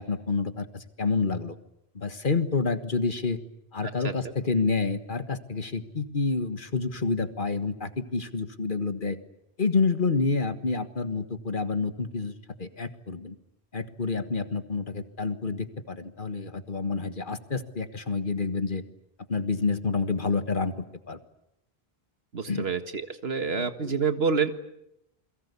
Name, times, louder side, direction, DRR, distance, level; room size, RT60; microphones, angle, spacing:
voice 1, 0.0-1.6 1.9-3.4 3.7-9.2 9.6-12.3 12.6-13.3 13.7-18.8 19.3-20.7 21.1-21.2 22.5-22.7 23.6-24.0, left 4 dB, 55° left, 9 dB, 1.7 m, -28 dB
voice 2, 22.3-24.5, right 5 dB, 75° right, 8 dB, 1.9 m, -28 dB
29.0 x 22.0 x 8.3 m, 0.82 s
omnidirectional pair, 1.0 m